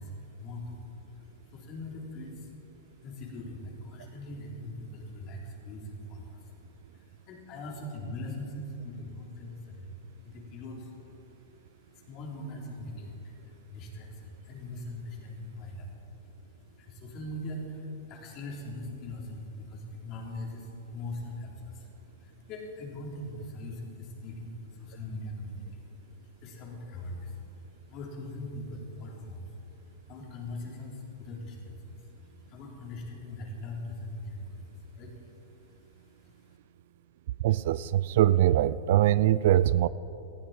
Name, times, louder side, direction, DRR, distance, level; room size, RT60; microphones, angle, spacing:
voice 1, 0.0-2.5 3.0-6.5 6.9-11.2 11.5-11.6 11.9-15.9 16.8-25.9 26.1-35.2 35.6-35.9 36.2-36.5, left 1 dB, 40° left, 3.9 m, -41 dB
voice 2, 37.4-39.9, right 13 dB, 65° right, 0.4 m, -23 dB
19.0 x 14.5 x 4.5 m
hypercardioid pair, 120°, 0 cm